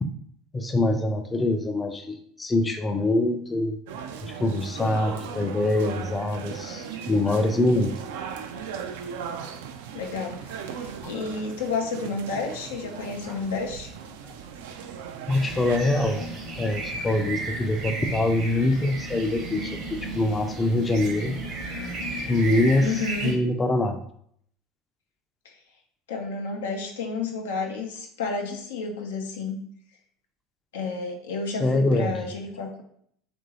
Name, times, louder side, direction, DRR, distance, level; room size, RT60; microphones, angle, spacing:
voice 1, 0.5-3.8 4.2-7.9 13.3-13.4 15.3-16.3 16.6-21.4 22.3-24.0 31.6-32.3, left 2 dB, 20° left, 5 dB, 0.4 m, -24 dB
sound 1, 3.9-15.8, right 7 dB, 75° right, 0.3 m, -38 dB
voice 2, 9.9-13.9 22.8-23.4 26.1-29.6 30.7-32.8, left 4 dB, 80° left, 2 dB, 0.5 m, -31 dB
sound 2, 15.3-23.3, right 2 dB, 55° right, 0.8 m, -34 dB
3.0 x 2.6 x 2.8 m, 0.65 s
hypercardioid pair, 80°, 0 cm